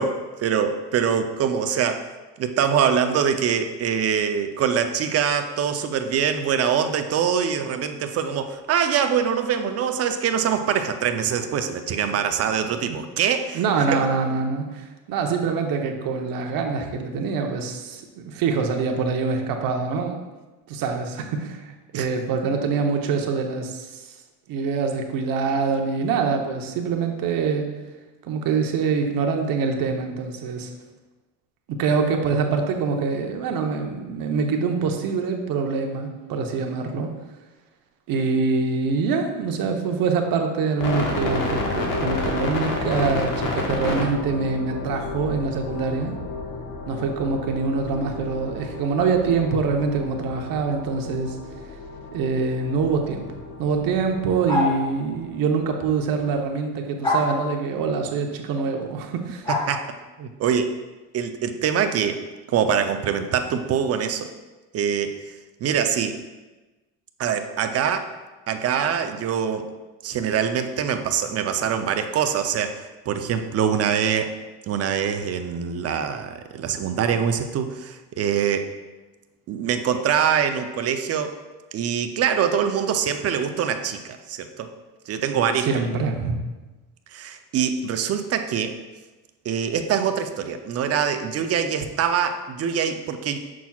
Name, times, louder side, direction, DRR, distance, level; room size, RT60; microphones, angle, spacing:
voice 1, 0.0-2.0 2.4-14.0 21.9-22.1 59.5-59.8 60.2-60.7 61.1-62.2 62.5-64.3 64.7-65.3 65.6-66.2 67.2-68.1 68.5-69.7 70.0-74.3 74.7-78.7 79.5-81.3 81.7-84.0 84.3-84.7 85.1-85.7 87.1-88.7 89.4-93.4, right 7 dB, 40° right, 8 dB, 0.5 m, -24 dB
voice 2, 13.5-20.2 20.7-24.0 24.5-27.7 28.2-30.7 31.7-37.1 38.1-46.1 46.9-51.4 52.1-53.3 53.6-59.5 85.6-86.4, right 5 dB, 55° right, 3 dB, 1.0 m, -25 dB
sound 1, 40.8-56.4, left 2 dB, 55° left, 1.3 m, -31 dB
sound 2, 54.5-54.8 57.0-57.3 59.5-59.7, left 1 dB, 10° left, 1.2 m, -23 dB
7.0 x 6.1 x 2.3 m, 1.2 s
cardioid pair, 120°, 39 cm